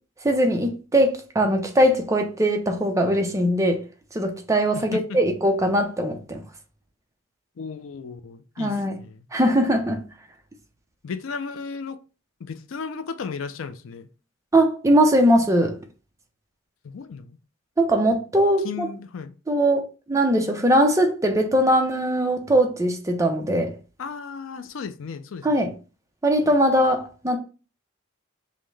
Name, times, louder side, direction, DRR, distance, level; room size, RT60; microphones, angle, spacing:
voice 1, 0.2-3.8 4.1-6.4 8.6-9.0 9.3-10.0 14.5-15.8 17.8-18.9 19.5-19.8 20.1-23.7 25.4-25.7 26.2-27.4, right 1 dB, 15° right, 0.6 m, -20 dB
voice 2, 7.6-9.3 11.0-12.0 12.4-14.1 16.8-17.4 18.6-19.3 24.0-25.7, left 5 dB, 80° left, 0.4 m, -35 dB
5.5 x 2.1 x 3.2 m
head